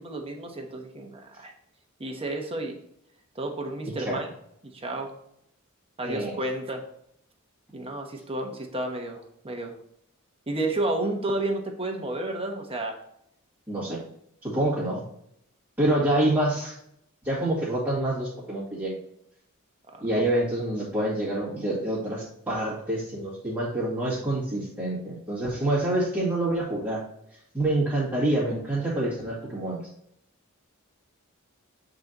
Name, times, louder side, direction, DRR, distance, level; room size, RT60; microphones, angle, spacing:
voice 1, 0.0-1.5 2.0-2.8 3.3-4.3 4.6-5.1 6.0-6.8 7.7-9.8 10.5-13.0 19.9-20.0, right 2 dB, 25° right, 3 dB, 1.0 m, -31 dB
voice 2, 6.0-6.4 13.7-14.0 14.4-15.0 15.8-16.8 17.2-19.0 20.0-27.0 27.5-29.8, right 1 dB, 10° right, -10 dB, 2.1 m, -27 dB
8.3 x 3.9 x 2.9 m, 0.73 s
head